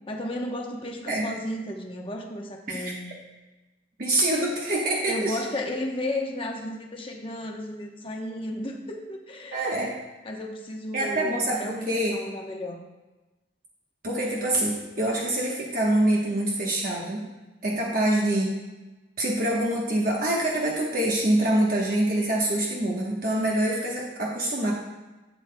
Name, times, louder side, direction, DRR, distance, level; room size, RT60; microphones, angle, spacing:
voice 1, 0.1-3.1 5.1-9.7 10.2-12.8, left 1 dB, 25° left, 1 dB, 0.9 m, -33 dB
voice 2, 4.0-5.4 9.5-9.9 10.9-12.2 14.0-17.2 17.6-18.6 19.2-24.7, right 1 dB, 45° right, -3 dB, 1.1 m, -25 dB
11.5 x 8.5 x 2.2 m, 1.1 s
head